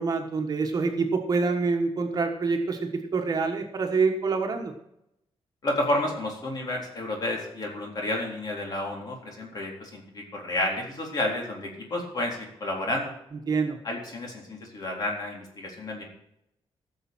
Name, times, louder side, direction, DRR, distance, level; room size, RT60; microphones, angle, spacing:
voice 1, 0.0-4.7 13.5-13.8, right 4 dB, 40° right, 4 dB, 1.5 m, -26 dB
voice 2, 5.6-13.1 13.8-16.0, left 1 dB, 40° left, 0 dB, 3.9 m, -31 dB
16.0 x 6.8 x 6.2 m, 0.80 s
wide cardioid pair, 170°, 10 cm